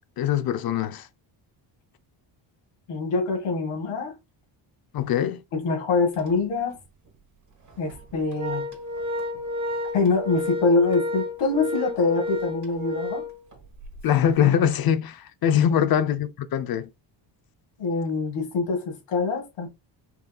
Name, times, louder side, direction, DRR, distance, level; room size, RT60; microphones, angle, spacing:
voice 1, 0.2-1.1 4.9-5.4 14.0-16.9, left 9 dB, 50° left, 0.6 m, -22 dB
voice 2, 2.9-4.1 5.5-6.8 7.8-8.7 9.9-13.2 15.7-15.8 17.8-19.7, left 4 dB, 85° left, 2.0 m, -24 dB
Organ, 6.1-6.3 6.7-6.8 7.7-14.0, left 1 dB, 35° right, 1.3 m, -31 dB
5.5 x 2.7 x 2.3 m
cardioid pair, 115°, 49 cm